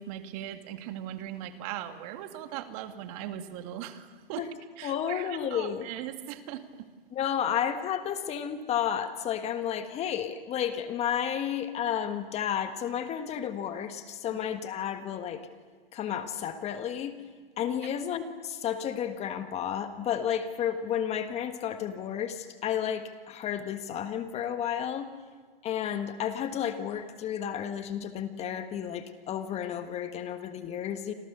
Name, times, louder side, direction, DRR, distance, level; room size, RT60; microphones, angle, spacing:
voice 1, 0.0-4.5 4.8-6.9 17.8-17.9, right 11 dB, 40° right, 8 dB, 2.1 m, -39 dB
voice 2, 4.8-5.9 7.1-15.5 15.9-17.1 17.6-25.1 25.6-31.1, left 9 dB, 20° left, 9 dB, 1.5 m, -32 dB
28.0 x 27.0 x 6.8 m, 1.5 s
hypercardioid pair, 130°, 29 cm